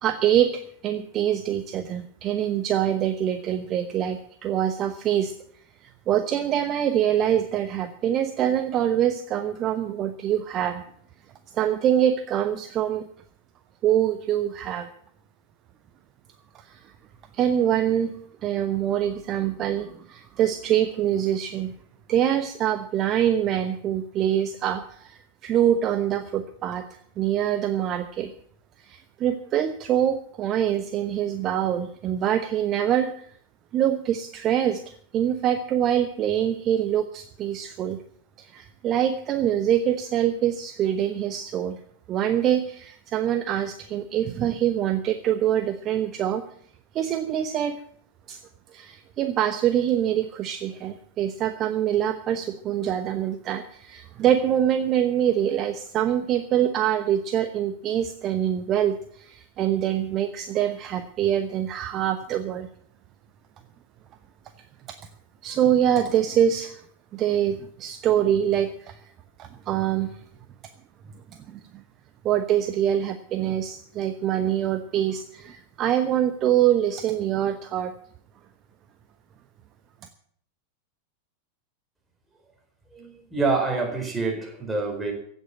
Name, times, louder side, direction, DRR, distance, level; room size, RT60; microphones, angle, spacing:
voice 1, 0.0-5.3 5.8-10.8 11.5-13.1 13.8-14.9 16.5-16.9 17.3-18.1 18.4-21.7 22.1-26.9 27.2-28.3 28.8-33.3 33.7-38.0 38.4-41.8 42.1-46.4 46.9-47.8 48.3-48.4 48.7-62.7 65.4-66.8 67.1-69.0 69.4-70.2 71.5-71.6 72.2-77.9, right 10 dB, 30° right, 10 dB, 0.9 m, -24 dB
voice 2, 82.9-85.1, right 3 dB, 10° right, 1 dB, 4.3 m, -26 dB
16.0 x 8.2 x 8.6 m, 0.64 s
figure-of-eight pair, 90°, 0 cm